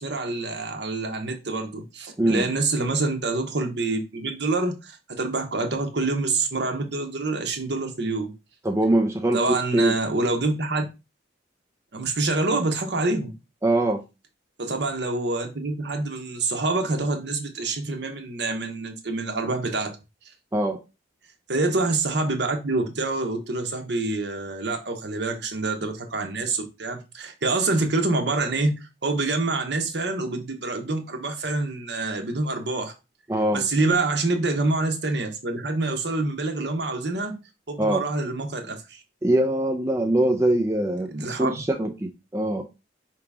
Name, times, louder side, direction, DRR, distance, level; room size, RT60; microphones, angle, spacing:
voice 1, 0.0-8.3 9.3-10.8 11.9-13.3 14.6-19.9 21.5-32.9 33.5-37.4 37.7-39.0 41.1-41.5, right 3 dB, 60° right, 1.0 m, -26 dB
voice 2, 8.6-10.0 13.6-14.0 20.5-20.8 33.3-33.6 37.8-38.0 39.2-42.6, right 1 dB, 15° right, 0.4 m, -23 dB
4.9 x 2.9 x 3.5 m
head